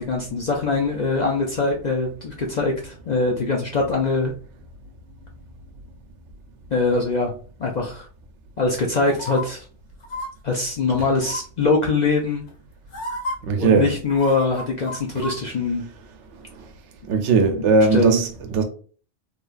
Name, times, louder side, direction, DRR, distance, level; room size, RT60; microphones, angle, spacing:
voice 1, 0.0-4.3 6.7-7.3 7.6-8.1 8.6-9.6 10.4-12.4 13.6-15.9 17.9-18.2, left 3 dB, 55° left, 0.5 m, -22 dB
sound 1, 9.1-9.4 10.0-10.3 11.2-11.6 12.5-12.6 12.9-13.3 14.1-15.4 15.7-15.8, equal, 85° left, 1.2 m, -31 dB
voice 2, 13.4-13.9 15.2-15.3 16.6-16.7 17.0-18.6, right 4 dB, 80° right, 0.9 m, -19 dB
3.1 x 2.3 x 2.4 m
omnidirectional pair, 1.2 m